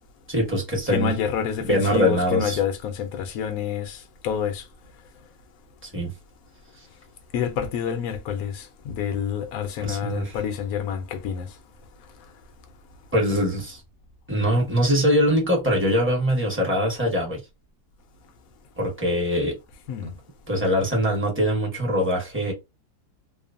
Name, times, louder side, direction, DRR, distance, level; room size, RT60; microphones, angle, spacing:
voice 1, 0.3-1.1 1.6-2.6 5.8-6.1 9.8-10.4 13.1-13.8 14.3-17.4 18.8-19.6 20.5-22.5, equal, 10° right, 0.6 m, -23 dB
voice 2, 0.9-4.0 4.2-4.6 7.3-11.5 19.9-20.1, left 8 dB, 70° left, 0.9 m, -28 dB
2.9 x 2.0 x 2.4 m
omnidirectional pair, 1.9 m